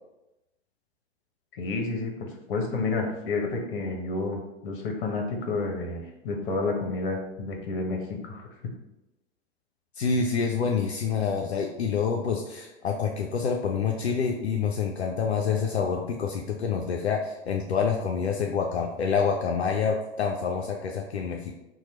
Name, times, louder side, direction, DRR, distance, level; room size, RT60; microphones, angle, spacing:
voice 1, 1.5-8.4, left 3 dB, 55° left, 2 dB, 0.9 m, -30 dB
voice 2, 10.0-21.5, left 6 dB, 80° left, 1 dB, 0.5 m, -27 dB
2.9 x 2.3 x 4.2 m, 0.96 s
figure-of-eight pair, 95°, 32 cm